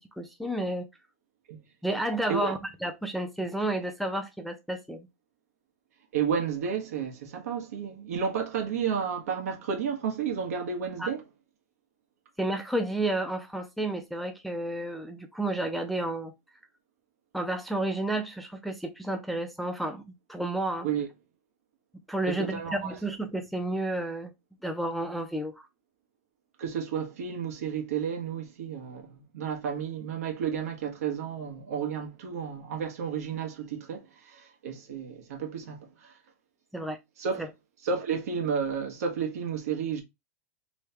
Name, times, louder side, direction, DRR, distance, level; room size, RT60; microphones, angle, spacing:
voice 1, 0.2-0.9 1.8-5.1 11.0-11.1 12.4-16.3 17.3-20.9 22.1-24.3 24.6-25.7 36.7-37.0, right 1 dB, ahead, 0.4 m, -31 dB
voice 2, 6.1-11.2 20.8-21.1 22.3-23.0 26.6-36.2 37.2-37.5 37.8-40.0, right 7 dB, 75° right, 1.3 m, -32 dB
3.2 x 2.8 x 3.3 m
supercardioid pair, 155°, 8 cm